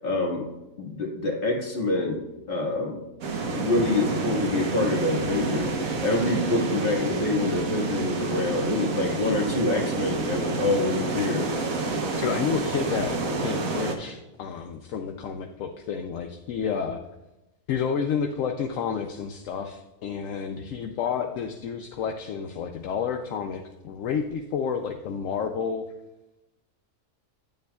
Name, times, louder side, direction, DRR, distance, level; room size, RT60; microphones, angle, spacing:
voice 1, 0.0-0.5 0.8-2.2 2.5-3.0 3.5-11.5, left 2 dB, 40° left, -1 dB, 1.7 m, -26 dB
sound 1, 3.2-14.0, right 3 dB, 75° right, 1.4 m, -28 dB
voice 2, 12.2-17.0 17.7-25.8, left 6 dB, 70° left, 4 dB, 0.9 m, -30 dB
9.2 x 9.0 x 2.3 m, 0.98 s
omnidirectional pair, 1.5 m